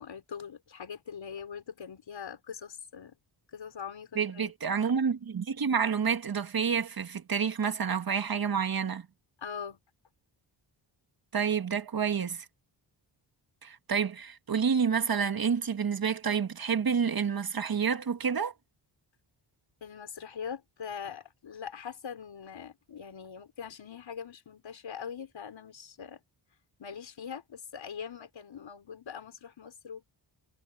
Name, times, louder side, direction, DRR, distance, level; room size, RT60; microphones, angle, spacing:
voice 1, 0.0-3.2 3.5-4.5 9.4-9.8 19.8-26.2 26.8-30.1, left 7 dB, 70° left, 4.9 m, -42 dB
voice 2, 4.2-9.1 11.3-12.5 13.6-18.5, right 6 dB, 50° right, 1.8 m, -29 dB
cardioid pair, 80°, 47 cm